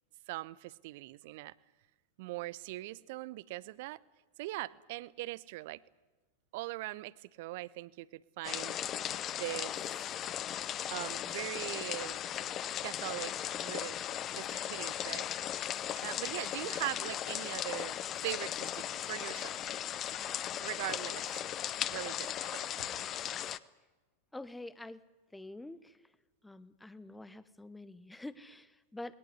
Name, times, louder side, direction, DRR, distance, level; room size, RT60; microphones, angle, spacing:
voice 1, 0.3-1.5 2.2-4.0 4.4-5.8 6.5-8.8 9.3-10.0 10.9-12.2 12.8-14.0 14.3-15.3 16.0-18.0 18.2-19.5 20.6-21.4 21.9-22.9, right 18 dB, 50° right, 21 dB, 0.7 m, -41 dB
sound 1, 8.4-23.6, left 11 dB, 30° left, 0.7 m, -37 dB
voice 2, 24.3-25.0 25.3-26.0 26.4-29.2, left 2 dB, 5° left, 17 dB, 1.1 m, -46 dB
21.0 x 18.5 x 9.5 m, 1.2 s
figure-of-eight pair, 90°, 0 cm